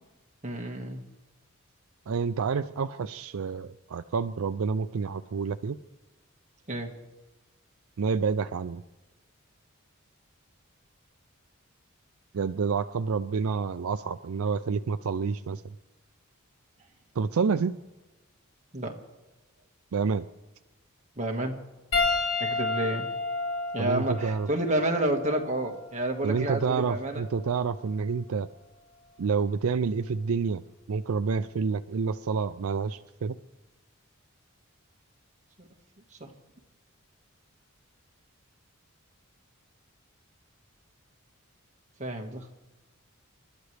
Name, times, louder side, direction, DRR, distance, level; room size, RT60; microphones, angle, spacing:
voice 1, 0.4-1.0 6.7-6.9 18.7-19.0 21.2-21.6 22.4-23.1 23.7-27.3 35.6-35.7 36.2-36.3 42.0-42.5, right 1 dB, 35° right, 2 dB, 1.7 m, -30 dB
voice 2, 2.1-5.8 8.0-8.8 12.3-15.6 17.2-17.8 19.9-20.3 23.8-24.5 26.2-28.5 29.2-30.6 30.9-33.4, right 5 dB, 75° right, 11 dB, 0.4 m, -28 dB
Piano, 21.9-26.6 27.5-27.7 29.6-29.7, left 3 dB, 65° left, 5.5 m, -31 dB
29.0 x 12.5 x 3.3 m, 1.1 s
head